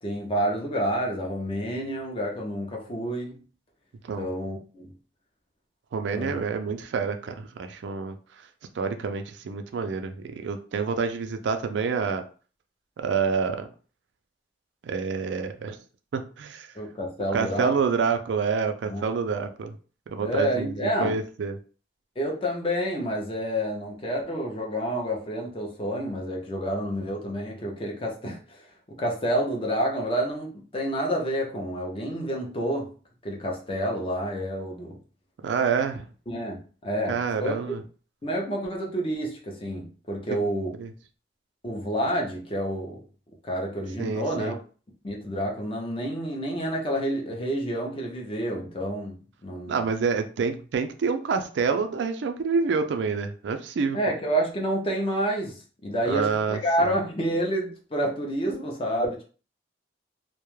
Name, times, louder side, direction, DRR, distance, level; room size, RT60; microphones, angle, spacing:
voice 1, 0.0-3.4 4.2-4.9 6.1-6.4 16.8-17.7 18.9-19.0 20.2-21.2 22.2-32.9 33.2-35.0 36.3-37.5 38.2-40.7 41.6-43.0 43.4-44.6 45.0-49.8 53.9-59.2, equal, 30° left, 0.5 m, -29 dB
voice 2, 5.9-8.2 8.7-12.2 13.0-13.7 14.8-15.8 16.1-16.7 17.3-19.8 20.1-21.6 35.4-36.1 37.1-37.8 40.8-40.9 44.0-44.5 49.7-54.0 56.1-56.9, right 5 dB, 80° right, 0.3 m, -27 dB
2.2 x 2.0 x 3.0 m
head